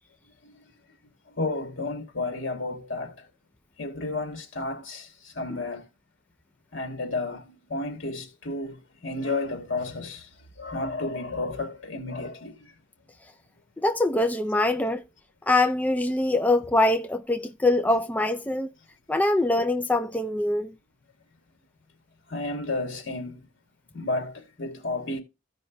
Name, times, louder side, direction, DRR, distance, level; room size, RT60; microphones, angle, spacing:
voice 1, 1.3-3.3 3.8-5.9 6.7-10.3 10.6-12.7 22.3-23.5 23.9-25.2, left 2 dB, 70° left, 2.5 m, -32 dB
voice 2, 13.8-15.0 15.5-18.7 19.1-20.7, left 2 dB, 10° left, 0.4 m, -23 dB
15.5 x 5.4 x 2.2 m
head